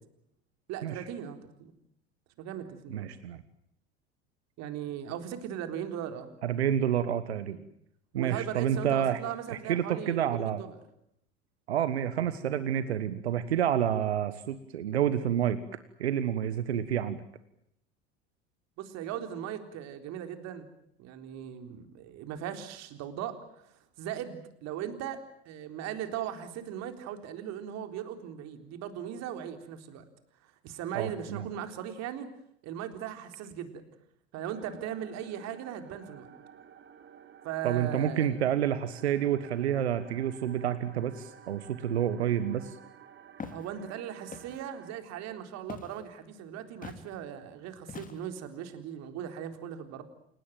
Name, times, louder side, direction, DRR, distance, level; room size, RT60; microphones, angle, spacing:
voice 1, 0.7-1.7 2.4-3.1 4.6-6.3 7.5-7.6 8.1-10.8 18.8-20.7 21.0-23.7 24.0-30.1 30.4-32.3 32.6-33.8 34.3-36.3 37.4-38.4 43.5-50.0, right 10 dB, 55° right, 8 dB, 3.9 m, -38 dB
voice 2, 2.9-3.4 6.4-7.6 8.1-9.2 9.5-10.6 11.7-15.6 16.0-17.2 30.9-31.5 37.6-42.8, right 10 dB, 80° right, 13 dB, 1.4 m, -29 dB
sound 1, 34.5-44.9, right 8 dB, 35° right, 3.0 m, -53 dB
Walk footsteps, 43.4-43.7 44.3-44.7 45.7-46.0 46.8-47.1 47.9-48.4, left 5 dB, 25° left, 3.2 m, -42 dB
29.0 x 17.5 x 9.1 m, 0.75 s
figure-of-eight pair, 70°, 32 cm